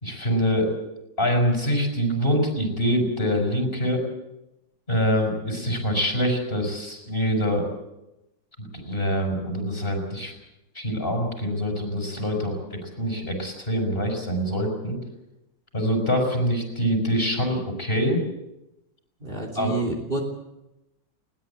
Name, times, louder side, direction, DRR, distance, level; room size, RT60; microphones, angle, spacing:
voice 1, 0.0-0.7 1.2-4.0 4.9-7.7 8.6-10.3 10.7-15.0 15.7-18.2 19.6-19.7, equal, 30° left, 3 dB, 5.7 m, -25 dB
voice 2, 19.2-20.2, right 3 dB, 30° right, 2 dB, 3.4 m, -28 dB
21.0 x 18.5 x 8.4 m, 0.92 s
omnidirectional pair, 2.0 m